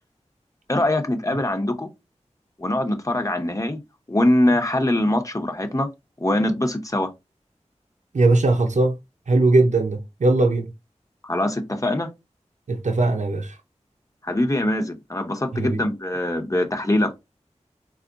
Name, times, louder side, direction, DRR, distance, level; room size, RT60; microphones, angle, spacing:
voice 1, 0.7-1.9 2.6-3.8 4.1-5.9 6.2-7.1 11.2-12.1 14.2-17.1, left 1 dB, 25° left, 1.0 m, -23 dB
voice 2, 8.1-8.9 9.3-10.7 12.7-13.5 15.5-15.8, right 2 dB, 80° right, 0.6 m, -19 dB
4.2 x 2.5 x 3.8 m
wide cardioid pair, 45°, 12 cm